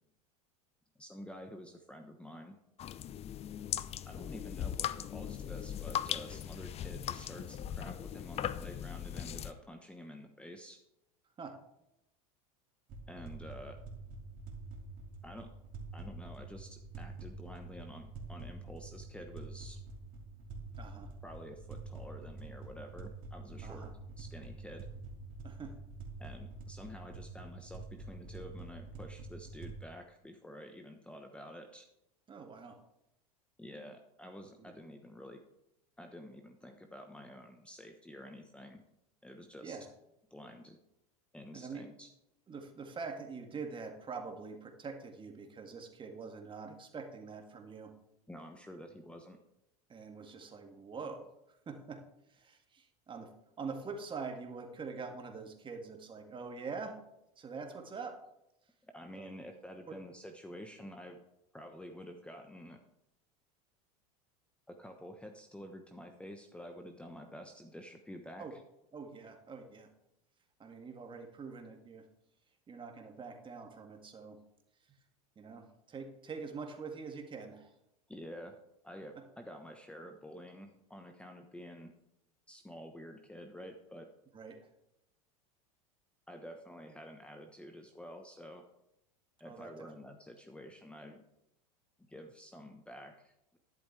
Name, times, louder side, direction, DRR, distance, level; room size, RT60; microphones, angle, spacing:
voice 1, 1.0-2.6 4.0-10.8 13.1-13.8 15.2-15.5 15.9-19.8 21.2-23.9 24.2-24.9 26.2-31.9 33.6-35.4 36.0-38.8 39.2-39.8 40.3-40.8 41.3-42.1 48.3-49.4 58.9-61.2 61.5-62.8 64.7-68.6 78.1-78.6 78.8-81.9 82.5-84.1 86.3-88.6 89.4-91.2 92.0-93.6, equal, 5° left, 4 dB, 1.2 m, -49 dB
sound 1, 2.8-9.5, left 10 dB, 35° left, 0.6 m, -39 dB
sound 2, 12.9-29.7, right 3 dB, 50° right, 2.6 m, -47 dB
voice 2, 20.8-21.1 23.6-23.9 25.4-25.8 32.3-32.8 34.6-34.7 39.6-39.9 41.5-41.9 42.5-47.9 49.9-51.3 51.7-52.0 52.3-57.0 57.4-58.2 59.2-59.3 59.9-60.0 68.4-68.5 68.9-69.9 70.6-72.1 72.7-74.4 74.9-75.0 75.4-77.7 79.1-79.2 84.3-84.7 89.4-89.9, right 4 dB, 25° right, 4 dB, 2.1 m, -44 dB
12.0 x 11.0 x 3.4 m, 0.85 s
hypercardioid pair, 85°, 19 cm